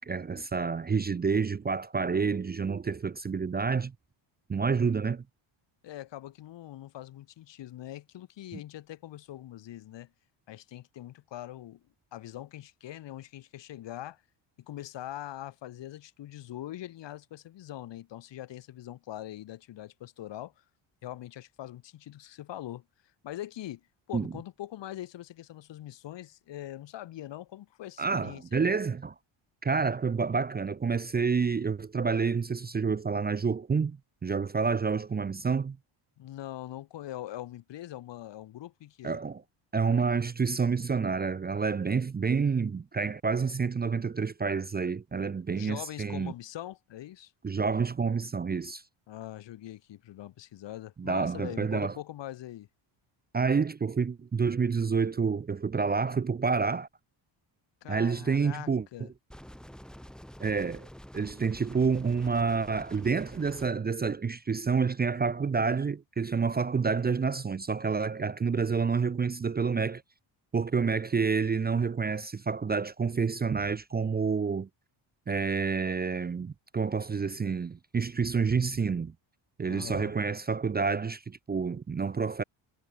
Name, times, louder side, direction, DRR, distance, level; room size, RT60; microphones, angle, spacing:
voice 1, 0.0-3.9 4.5-5.2 24.1-24.3 28.0-29.1 29.6-35.8 39.0-39.4 39.7-46.3 47.4-48.8 51.0-52.0 53.3-56.9 57.9-58.9 60.4-60.9 61.1-70.0 70.5-74.7 75.3-79.1 79.6-82.4, right 5 dB, 20° right, 0.6 m, -28 dB
voice 2, 5.8-10.1 10.5-11.8 12.1-14.2 14.7-20.5 21.0-22.8 23.2-23.8 24.1-28.4 36.2-39.2 45.5-47.3 49.1-52.7 57.8-59.1 79.6-80.1, left 13 dB, 60° left, 1.5 m, -42 dB
sound 1, 59.3-63.7, equal, ahead, 2.6 m, -48 dB
cardioid pair, 135°, 49 cm